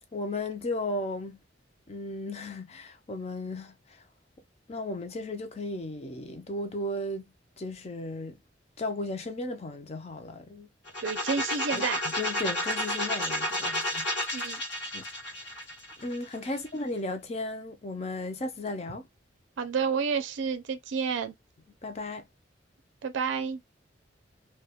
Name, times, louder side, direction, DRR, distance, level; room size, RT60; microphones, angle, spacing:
voice 1, 0.1-1.4 1.9-4.0 4.7-7.3 7.6-8.4 8.8-10.7 11.7-14.1 14.9-15.0 15.5-15.6 16.0-19.1 21.8-22.3, left 2 dB, 35° left, 0.5 m, -35 dB
sound 1, 10.9-16.7, equal, 80° left, 1.0 m, -31 dB
voice 2, 11.0-12.0 14.3-14.6 16.5-16.6 19.6-21.3 23.0-23.6, right 5 dB, 90° right, 0.4 m, -30 dB
2.3 x 2.2 x 2.8 m
head